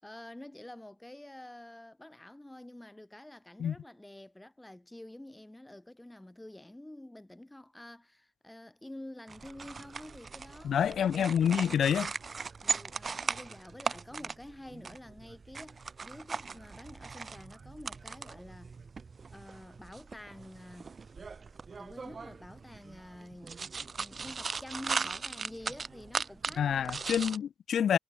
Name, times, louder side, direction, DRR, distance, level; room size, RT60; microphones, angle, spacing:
voice 1, 0.0-11.3 12.6-18.7 19.3-20.9 21.8-27.0 27.3-27.4, left 1 dB, 10° left, 4.8 m, -49 dB
sound 1, 9.3-27.4, right 5 dB, 35° right, 1.7 m, -39 dB
voice 2, 10.6-12.1 26.6-28.0, left 8 dB, 60° left, 0.5 m, -27 dB
cardioid pair, 90°, 0 cm